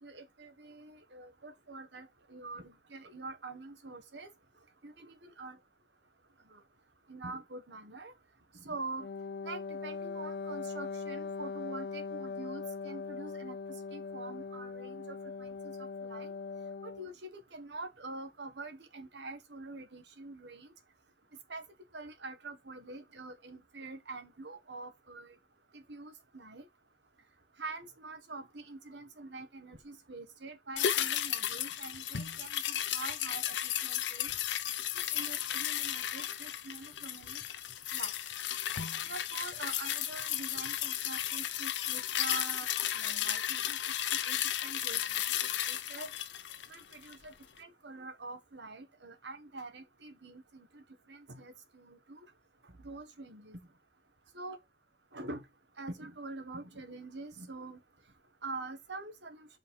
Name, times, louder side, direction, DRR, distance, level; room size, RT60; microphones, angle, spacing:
voice 1, 0.0-4.3 4.8-5.6 6.5-6.6 7.1-8.1 8.5-9.1 9.4-13.6 13.9-16.3 16.8-20.7 21.5-21.6 21.9-25.3 25.7-26.7 27.6-34.3 35.1-37.4 37.9-38.1 39.0-42.7 42.9-43.8 44.3-46.1 46.7-52.2 52.6-53.6 54.3-54.6 55.1-55.4 55.8-57.8 58.4-59.5, right 3 dB, 80° right, 1.4 m, -45 dB
Wind instrument woodwind instrument, 9.0-17.1, left 4 dB, 60° left, 0.3 m, -40 dB
sound 1, 30.8-47.3 47.6-47.7, left 11 dB, 90° left, 0.7 m, -34 dB
5.3 x 4.1 x 5.4 m
head